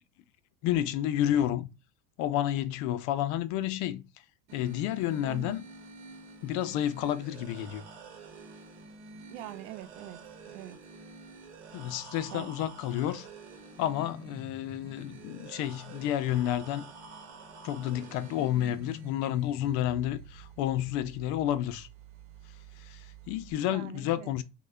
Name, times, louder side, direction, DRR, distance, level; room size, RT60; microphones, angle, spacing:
voice 1, 0.6-1.7 2.2-4.0 4.5-5.6 6.4-7.8 11.7-13.3 13.8-16.8 17.6-21.9 22.8-24.4, left 12 dB, 55° left, 0.4 m, -30 dB
sound 1, 4.5-23.5, right 3 dB, 90° right, 1.1 m, -48 dB
voice 2, 5.2-5.5 9.3-10.2 10.5-10.8 12.3-12.7 23.7-24.3, right 13 dB, 65° right, 0.5 m, -43 dB
3.2 x 2.1 x 3.4 m
supercardioid pair, 125°, 36 cm